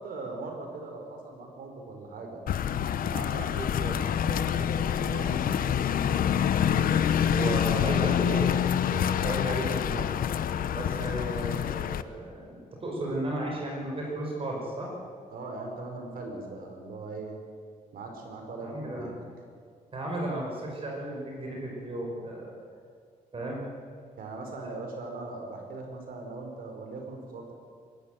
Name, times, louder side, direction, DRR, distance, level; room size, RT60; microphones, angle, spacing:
voice 1, 0.0-2.4 3.0-5.9 15.3-17.4 17.9-19.1 24.2-27.5, right 3 dB, 75° right, 3 dB, 4.9 m, -40 dB
sound 1, 2.5-12.0, left 9 dB, 70° left, 0.8 m, -26 dB
voice 2, 7.3-8.4 8.9-10.1 10.7-14.9 18.6-19.1 19.9-22.5 23.3-23.6, right 1 dB, 40° right, -1 dB, 5.5 m, -34 dB
23.0 x 13.5 x 9.2 m, 2.1 s
cardioid pair, 130°, 15 cm